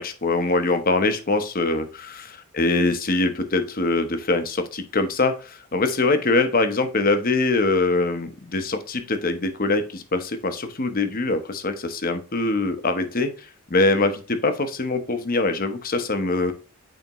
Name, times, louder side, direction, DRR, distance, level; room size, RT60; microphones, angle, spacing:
voice 1, 0.0-2.3 2.6-16.5, left 2 dB, 40° left, 8 dB, 0.9 m, -23 dB
9.0 x 3.6 x 3.0 m, 0.36 s
head